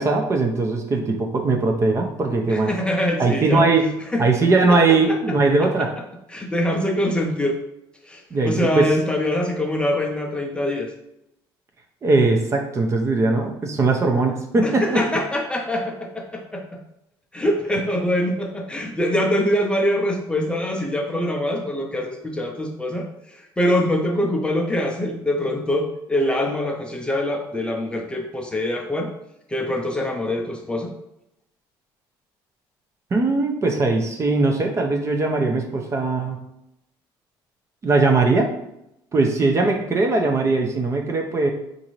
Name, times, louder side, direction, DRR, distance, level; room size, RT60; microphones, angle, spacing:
voice 1, 0.0-2.7 3.2-3.9 4.2-5.9 8.3-8.9 12.0-15.0 33.1-36.4 37.8-38.5 39.1-41.5, right 3 dB, 30° right, 3 dB, 0.6 m, -20 dB
voice 2, 2.5-3.7 4.1-4.2 4.7-5.4 6.3-7.6 8.1-10.9 14.6-16.6 17.3-29.1 29.5-30.9, left 1 dB, 10° left, 1 dB, 0.5 m, -24 dB
3.8 x 2.6 x 3.0 m, 0.82 s
cardioid pair, 110°, 9 cm